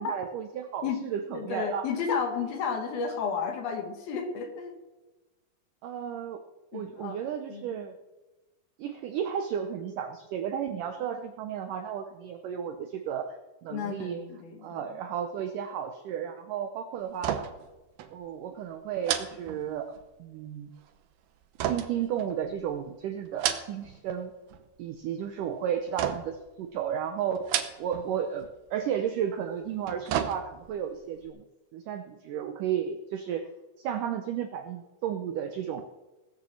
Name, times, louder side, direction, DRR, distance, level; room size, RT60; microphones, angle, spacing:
voice 1, 0.0-1.9 5.8-6.4 6.7-7.9 8.8-14.2 14.6-17.5 18.1-20.7 21.6-24.3 24.8-31.4 31.7-33.4 33.8-35.9, right 9 dB, 90° right, 8 dB, 1.8 m, -33 dB
voice 2, 1.3-4.8 6.7-7.2 7.5-7.8 13.7-15.0, left 6 dB, 65° left, 4 dB, 3.5 m, -32 dB
sound 1, 17.1-17.7 18.0-18.2 19.0-20.1 21.6-22.7 23.2-24.0 24.3-24.9 26.0-26.5 27.4-28.1 28.4-28.5 29.6-30.8 31.2-31.3, right 10 dB, 70° right, 2.5 m, -32 dB
19.5 x 7.1 x 7.1 m, 1.1 s
omnidirectional pair, 4.9 m